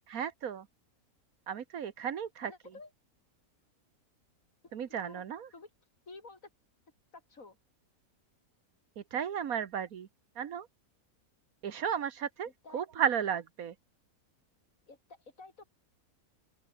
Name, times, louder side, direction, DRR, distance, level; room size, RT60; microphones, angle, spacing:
voice 1, 0.1-0.7 1.5-2.5 4.7-5.5 9.0-10.1 10.4-10.7 11.6-13.7, right 8 dB, 70° right, 1.5 m, -34 dB
voice 2, 2.4-2.9 4.6-4.7 5.0-5.2 5.5-5.7 6.1-6.5 7.1-7.6 12.4-12.8 14.9-15.6, left 3 dB, 60° left, 4.4 m, -51 dB
open air
omnidirectional pair, 1.6 m